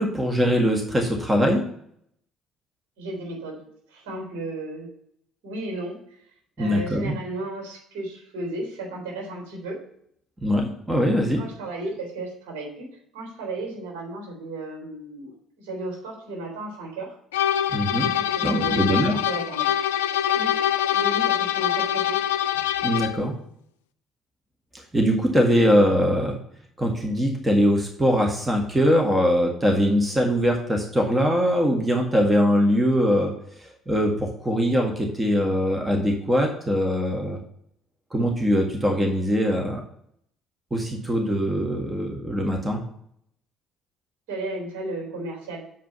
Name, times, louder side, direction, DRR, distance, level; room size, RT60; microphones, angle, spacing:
voice 1, 0.0-1.6 6.6-7.2 10.4-11.4 17.7-18.1 18.4-19.2 22.8-23.3 24.9-26.4 26.8-33.3 33.6-37.4 38.1-39.8 40.7-42.8, equal, 15° right, 2 dB, 1.8 m, -22 dB
voice 2, 3.0-3.6 3.9-4.9 5.4-6.2 6.6-9.8 11.4-17.2 18.0-19.7 20.3-20.6 20.9-22.2 44.3-45.7, right 2 dB, 70° right, -1 dB, 3.7 m, -34 dB
sound 1, 17.3-23.3, left 11 dB, 80° left, 0.4 m, -24 dB
7.6 x 5.1 x 5.4 m, 0.70 s
hypercardioid pair, 55°, 0 cm